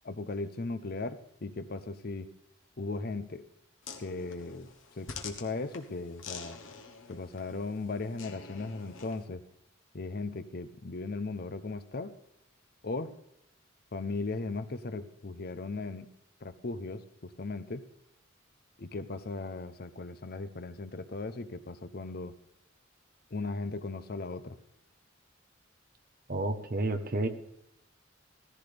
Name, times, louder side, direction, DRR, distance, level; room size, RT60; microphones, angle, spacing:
voice 1, 0.0-2.3 2.8-3.4 4.0-4.7 5.0-6.6 7.1-9.4 9.9-12.1 12.8-13.1 13.9-16.1 16.4-17.8 18.8-22.3 23.3-24.6, left 3 dB, 50° left, 12 dB, 0.7 m, -37 dB
sound 1, 3.8-9.2, left 5 dB, 75° left, 1.2 m, -47 dB
voice 2, 26.3-27.3, right 2 dB, 45° right, 7 dB, 1.0 m, -30 dB
15.5 x 14.5 x 3.4 m, 0.76 s
head